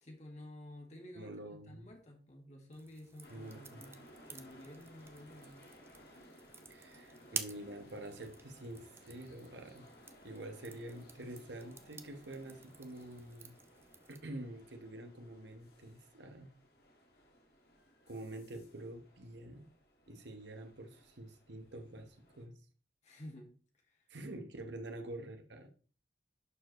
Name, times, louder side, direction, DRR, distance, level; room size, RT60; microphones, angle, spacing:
voice 1, 0.0-5.6 6.9-7.4 23.0-23.5 23.8-24.0, left 1 dB, 40° left, 1 dB, 2.0 m, -52 dB
voice 2, 1.1-1.9 3.3-3.8 6.7-9.9 10.2-13.6 14.1-16.5 18.1-19.6 20.1-22.6 24.1-25.7, right 1 dB, 85° right, 5 dB, 1.1 m, -47 dB
sound 1, 2.7-14.2, right 5 dB, 15° right, 0.5 m, -50 dB
sound 2, 3.2-22.5, equal, 60° left, 1.8 m, -60 dB
11.0 x 4.6 x 3.1 m, 0.40 s
head